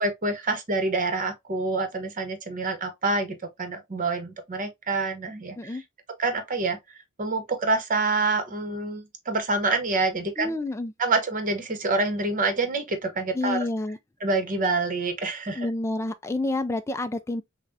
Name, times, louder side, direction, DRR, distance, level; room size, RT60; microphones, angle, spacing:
voice 1, 0.0-5.8 6.2-6.8 7.2-10.5 11.0-13.6 14.2-15.7, right 3 dB, 40° right, 1.0 m, -27 dB
voice 2, 10.4-10.9 13.3-14.0 15.5-17.4, left 2 dB, 15° left, 0.3 m, -29 dB
5.8 x 2.2 x 2.7 m
head